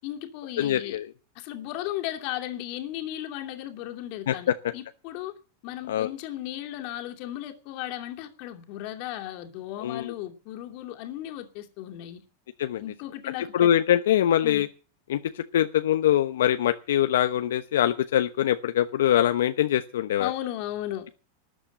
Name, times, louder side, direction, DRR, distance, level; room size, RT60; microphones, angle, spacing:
voice 1, 0.0-1.0 1.3-5.3 5.6-12.2 12.8-13.7 14.4-14.7 20.2-21.1, left 13 dB, 45° left, 2.7 m, -35 dB
voice 2, 0.6-1.1 4.3-4.5 5.9-6.1 9.8-10.1 12.6-12.8 13.5-14.7 15.1-20.3, left 11 dB, 85° left, 0.9 m, -23 dB
13.5 x 8.7 x 8.9 m
supercardioid pair, 155°, 0 cm